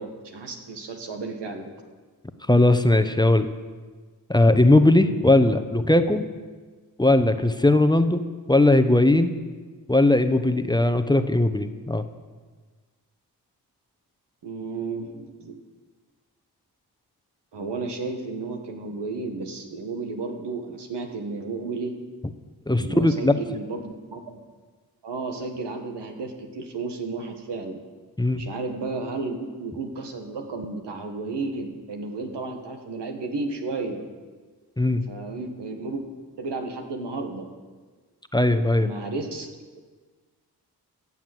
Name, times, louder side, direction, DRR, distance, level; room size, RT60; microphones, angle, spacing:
voice 1, 0.0-1.7 14.4-15.6 17.5-21.9 22.8-24.4 25.0-27.8 28.4-34.0 35.1-36.0 36.4-37.5 38.5-39.5, right 3 dB, 85° right, 4 dB, 1.7 m, -33 dB
voice 2, 2.5-3.5 4.3-6.2 7.0-8.2 8.5-9.3 9.9-12.0 22.7-23.4 28.2-28.4 34.8-35.1 38.3-38.9, left 2 dB, 10° left, 9 dB, 0.9 m, -19 dB
15.5 x 7.2 x 7.9 m, 1.4 s
cardioid pair, 45°, 41 cm